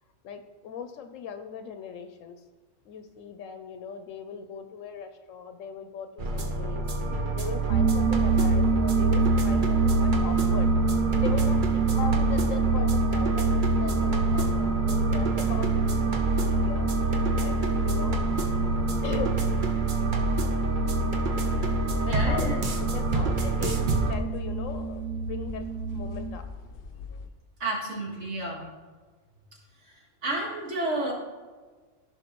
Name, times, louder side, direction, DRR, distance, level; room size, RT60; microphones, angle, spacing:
voice 1, 0.2-2.4 2.8-10.7 11.1-18.2 19.0-19.3 22.0-25.7 25.9-26.4, left 6 dB, 80° left, 8 dB, 1.0 m, -39 dB
sound 1, 6.2-24.1, right 2 dB, 45° right, 0.8 m, -28 dB
sound 2, 7.7-26.4, right 4 dB, 80° right, 1.0 m, -26 dB
sound 3, 16.3-27.3, left 5 dB, 60° left, 0.7 m, -44 dB
voice 2, 22.0-22.6 27.6-28.7 30.2-31.1, right 1 dB, 60° right, -2 dB, 2.1 m, -30 dB
14.5 x 5.4 x 3.0 m, 1.4 s
omnidirectional pair, 1.3 m